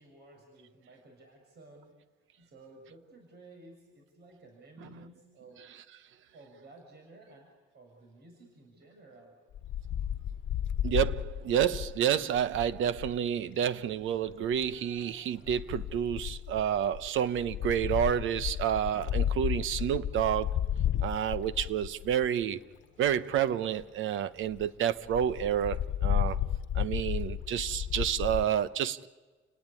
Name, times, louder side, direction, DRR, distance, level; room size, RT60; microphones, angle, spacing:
voice 1, 0.0-1.9 2.4-5.6 6.3-9.3, right 2 dB, 55° right, 6.5 m, -54 dB
Wind, 9.5-13.2 14.3-14.7 15.5-22.4 23.0-23.1 23.4-23.5 23.8-23.9 24.2-24.3 24.5-24.7 25.1-28.4, left 10 dB, 70° left, 1.1 m, -33 dB
voice 2, 10.8-20.6 21.0-22.6 23.0-26.4 26.7-29.1, right 9 dB, 80° right, 1.0 m, -29 dB
30.0 x 18.5 x 9.8 m
cardioid pair, 90°, 20 cm